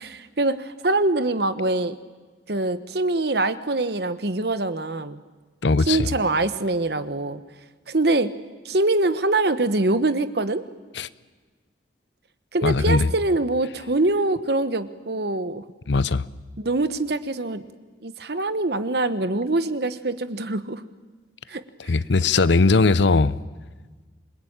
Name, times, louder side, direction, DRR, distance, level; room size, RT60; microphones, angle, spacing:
voice 1, 0.0-1.9 2.5-5.2 5.8-7.4 7.9-8.3 8.6-10.6 12.5-15.6 16.6-17.6 18.0-20.8 21.5-21.9, right 2 dB, 55° right, 1.1 m, -24 dB
voice 2, 5.6-6.1 10.9-11.1 12.6-13.1 15.9-16.2 21.9-23.4, left 3 dB, 70° left, 0.7 m, -19 dB
27.0 x 21.0 x 8.8 m
head